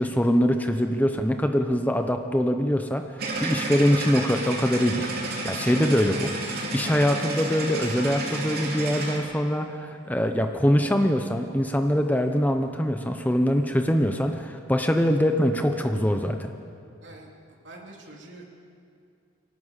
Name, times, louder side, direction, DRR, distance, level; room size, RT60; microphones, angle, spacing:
voice 1, 0.0-3.0 3.4-6.3 6.7-16.5, equal, 10° left, 6 dB, 0.8 m, -23 dB
sound 1, 3.2-9.2, right 2 dB, 50° right, 3.3 m, -31 dB
voice 2, 17.0-18.5, right 2 dB, 65° right, -1 dB, 3.4 m, -46 dB
24.5 x 17.5 x 7.5 m, 2.4 s
head